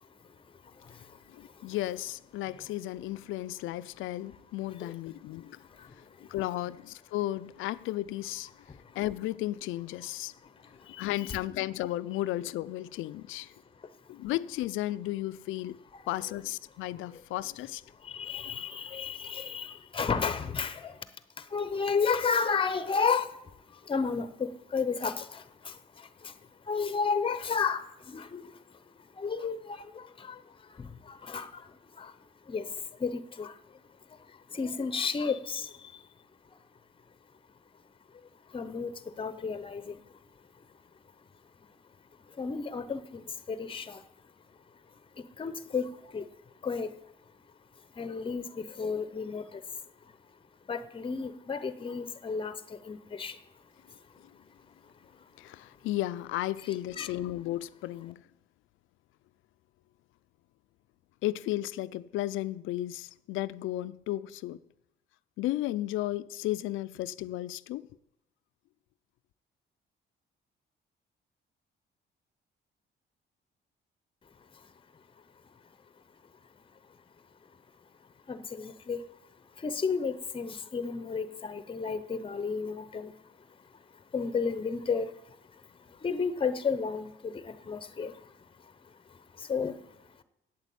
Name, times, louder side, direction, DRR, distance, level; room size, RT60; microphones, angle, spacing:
voice 1, 1.3-5.6 6.2-8.5 8.9-10.3 11.0-13.5 14.1-15.8 16.1-17.8 55.4-58.2 61.2-64.6 65.4-67.9, left 15 dB, 85° left, 0.4 m, -34 dB
voice 2, 18.1-20.9 21.5-23.3 23.9-25.4 26.7-28.4 29.2-29.8 30.2-30.3 30.8-31.5 32.0-32.1 32.5-32.7 33.0-33.5 34.5-35.7 38.5-38.9 39.2-40.0 42.4-44.0 45.4-45.9 46.1-46.3 46.6-46.9 48.0-49.4 50.7-52.5 52.9-53.3 57.0-57.1 78.3-79.0 79.6-83.1 84.1-85.1 86.0-88.1 89.5-89.7, left 5 dB, 25° left, 0.7 m, -32 dB
8.1 x 8.0 x 8.4 m
cardioid pair, 90°, 20 cm